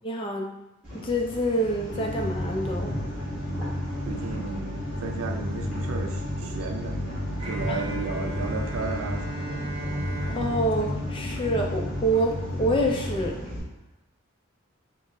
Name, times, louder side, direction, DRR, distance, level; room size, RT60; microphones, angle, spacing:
voice 1, 0.0-0.5 0.9-2.9 7.7-7.8 10.3-13.4, right 1 dB, 25° left, 1 dB, 0.4 m, -27 dB
sound 1, 0.8-13.6, equal, 5° right, 1.2 m, -38 dB
sound 2, 1.9-13.3, left 1 dB, 75° left, 0.7 m, -32 dB
voice 2, 4.1-7.0 7.5-9.7, right 4 dB, 75° right, 3 dB, 0.4 m, -34 dB
Bowed string instrument, 7.4-12.3, equal, 25° right, 0.6 m, -37 dB
4.0 x 2.1 x 3.6 m, 0.94 s
head